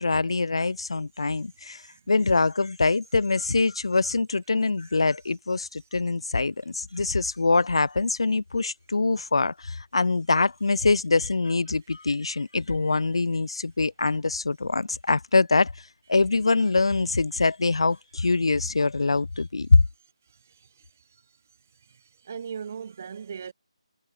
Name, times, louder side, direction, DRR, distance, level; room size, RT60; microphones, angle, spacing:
voice 1, 0.0-15.7 16.1-19.8, left 3 dB, 55° left, 0.6 m, -24 dB
voice 2, 20.2-21.4 21.7-23.5, right 7 dB, 20° right, 0.9 m, -40 dB
figure-of-eight pair, 180°, 3 cm